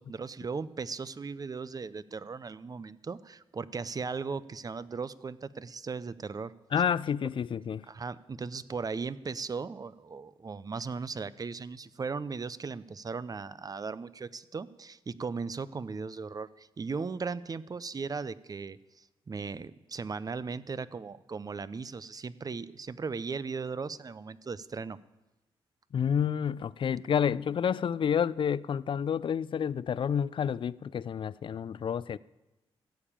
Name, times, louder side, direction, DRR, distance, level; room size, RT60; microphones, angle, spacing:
voice 1, 0.0-6.5 7.9-25.0, right 4 dB, 40° right, 0.6 m, -37 dB
voice 2, 6.7-7.8 25.9-32.2, left 8 dB, 55° left, 0.4 m, -29 dB
14.5 x 7.0 x 8.9 m
cardioid pair, 65°, 10 cm